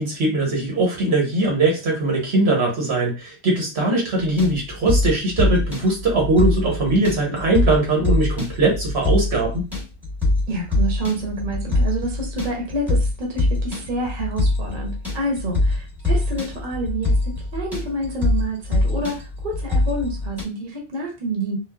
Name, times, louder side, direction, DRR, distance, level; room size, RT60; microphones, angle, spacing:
voice 1, 0.0-9.7, right 2 dB, 85° right, -1 dB, 1.2 m, -20 dB
sound 1, 4.2-20.4, left 2 dB, ahead, 1.0 m, -23 dB
voice 2, 10.5-21.6, right 2 dB, 50° right, 0 dB, 0.9 m, -28 dB
3.2 x 2.0 x 2.2 m, 0.31 s
omnidirectional pair, 1.1 m